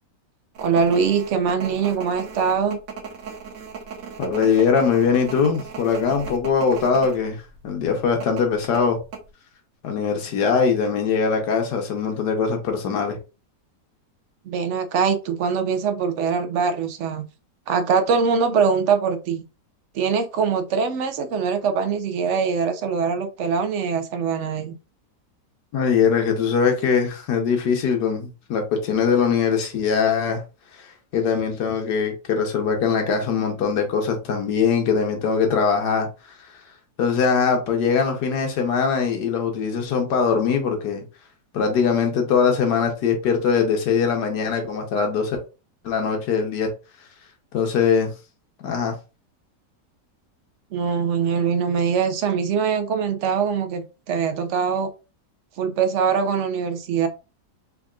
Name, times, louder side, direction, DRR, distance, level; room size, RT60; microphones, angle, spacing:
voice 1, 0.6-2.8 14.5-17.2 17.7-19.5 19.9-24.8 50.7-54.9 55.6-57.1, right 6 dB, 70° right, 0.7 m, -23 dB
sound 1, 0.6-7.2 7.5-7.6 8.2-9.2, right 5 dB, 90° right, 1.6 m, -37 dB
voice 2, 4.2-9.0 9.8-13.2 25.7-30.4 30.8-36.1 37.0-41.0 41.5-45.4 45.8-46.7 47.5-48.1 48.6-48.9, left 6 dB, 75° left, 1.5 m, -21 dB
3.6 x 3.5 x 2.4 m
omnidirectional pair, 1.8 m